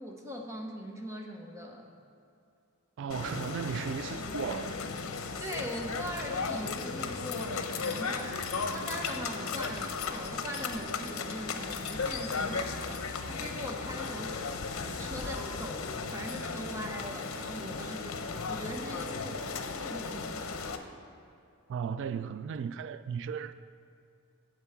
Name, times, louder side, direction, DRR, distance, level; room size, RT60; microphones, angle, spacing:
voice 1, 0.0-1.9 5.4-14.6 15.0-18.2 18.5-19.5 19.7-20.4, equal, 15° right, 0.9 m, -41 dB
voice 2, 3.0-4.8 21.7-23.5, right 7 dB, 60° right, 0.3 m, -35 dB
sound 1, 3.1-20.8, left 4 dB, 85° left, 0.7 m, -36 dB
8.2 x 7.8 x 5.8 m
head